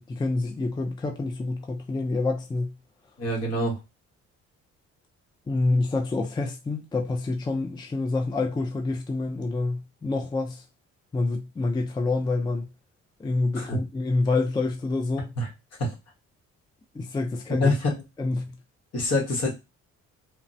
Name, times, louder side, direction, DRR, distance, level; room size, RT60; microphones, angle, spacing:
voice 1, 0.0-2.7 5.5-10.6 11.1-12.7 13.2-15.3 16.9-17.7 18.2-18.5, left 3 dB, 15° left, 0.4 m, -27 dB
voice 2, 3.2-3.8 13.5-13.8 15.4-15.5 15.8-15.9 17.6-17.9 18.9-19.5, left 1 dB, 55° left, 1.3 m, -25 dB
3.1 x 2.0 x 2.6 m
cardioid pair, 90°, 30 cm